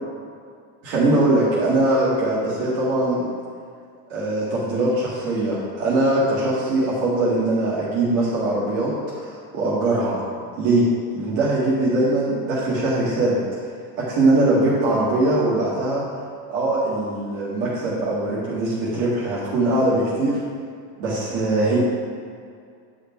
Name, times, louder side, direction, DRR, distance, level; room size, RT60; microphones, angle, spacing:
voice 1, 0.8-3.2 4.1-10.2 10.6-10.9 11.1-13.4 14.0-16.0 16.5-20.4 21.0-21.8, right 2 dB, 60° right, -8 dB, 2.0 m, -21 dB
8.9 x 5.0 x 4.5 m, 2.3 s
cardioid pair, 155°, 42 cm